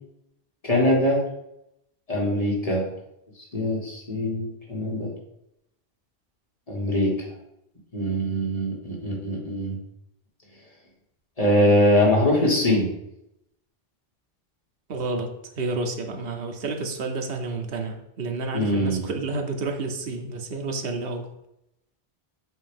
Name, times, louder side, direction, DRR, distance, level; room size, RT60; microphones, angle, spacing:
voice 1, 0.6-1.2 2.1-2.9 3.5-5.1 6.7-7.1 7.9-9.8 11.4-12.9 18.5-19.1, left 1 dB, 35° left, -3 dB, 1.7 m, -22 dB
voice 2, 14.9-21.3, right 3 dB, 70° right, 3 dB, 1.0 m, -30 dB
7.7 x 2.8 x 5.2 m, 0.83 s
omnidirectional pair, 1.0 m